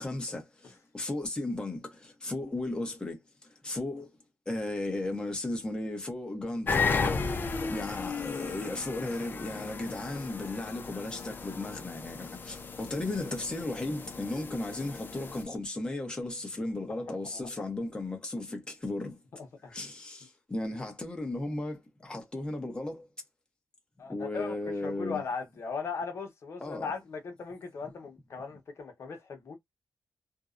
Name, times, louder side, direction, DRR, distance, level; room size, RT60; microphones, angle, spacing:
voice 1, 0.0-3.2 3.6-4.1 4.5-19.2 19.7-23.1 24.1-25.2 26.6-26.9, left 2 dB, 15° left, 0.8 m, -35 dB
sound 1, 6.7-15.4, left 4 dB, 35° left, 0.4 m, -35 dB
voice 2, 17.1-17.5 19.4-19.7 24.0-29.6, left 5 dB, 55° left, 0.9 m, -38 dB
2.6 x 2.0 x 2.4 m
wide cardioid pair, 130°, 6 cm